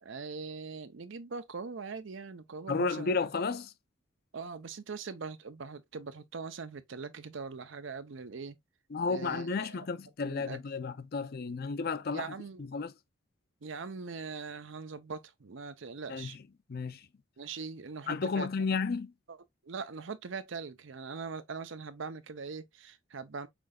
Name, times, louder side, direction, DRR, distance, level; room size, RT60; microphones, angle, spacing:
voice 1, 0.0-3.1 4.3-8.6 9.1-9.8 10.2-10.6 12.1-12.6 13.6-16.4 17.4-18.7 19.3-19.4 19.6-23.5, right 4 dB, 60° right, 0.6 m, -41 dB
voice 2, 2.7-3.7 8.9-12.3 12.6-12.9 16.1-16.3 16.7-17.0 18.1-19.1, left 4 dB, 50° left, 0.5 m, -32 dB
6.0 x 3.8 x 2.3 m
head